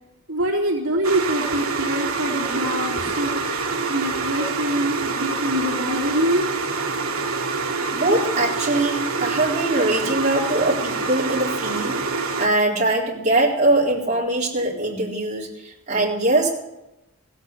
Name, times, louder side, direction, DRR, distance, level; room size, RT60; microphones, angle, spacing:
voice 1, 0.3-6.5, right 1 dB, 65° right, -3 dB, 3.3 m, -25 dB
sound 1, 1.0-12.5, right 4 dB, 80° right, 1.6 m, -26 dB
voice 2, 7.9-16.5, right 2 dB, 30° right, -5 dB, 4.0 m, -22 dB
16.5 x 8.4 x 8.1 m, 0.91 s
head